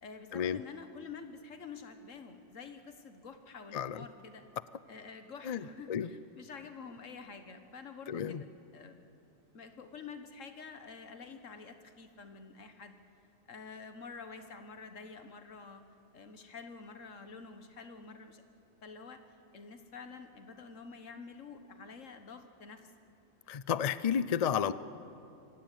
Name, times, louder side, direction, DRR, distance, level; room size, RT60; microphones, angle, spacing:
voice 1, 0.0-4.4 4.9-8.5 8.7-9.0 9.5-13.0 13.5-15.8 16.1-18.4 18.8-19.2 19.5-22.9, left 5 dB, 75° left, 8 dB, 1.8 m, -48 dB
voice 2, 3.7-4.0 5.4-6.1 8.1-8.4 23.5-24.7, left 8 dB, 50° left, 16 dB, 0.5 m, -32 dB
25.0 x 16.5 x 9.2 m, 2.7 s
omnidirectional pair, 1.3 m